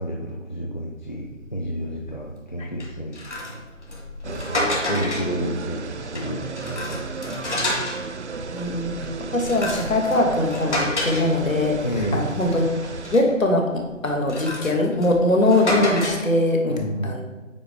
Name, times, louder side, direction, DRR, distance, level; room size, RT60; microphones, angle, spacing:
voice 1, 0.0-3.2 4.2-7.7 11.8-12.2 16.7-17.2, equal, 35° left, -1 dB, 0.6 m, -30 dB
sound 1, 1.4-1.6 2.0-2.3 2.8-5.4 5.9-8.1 8.6-11.9 12.2-13.4 14.0-16.4, left 1 dB, 60° left, 2.1 m, -30 dB
sound 2, 4.2-13.2, right 4 dB, 60° right, 0.5 m, -34 dB
voice 2, 8.5-8.9 9.2-12.7 13.1-16.8 17.0-17.2, left 1 dB, 80° left, 1 dB, 1.9 m, -21 dB
8.6 x 4.7 x 3.6 m, 1.2 s
figure-of-eight pair, 175°, 39 cm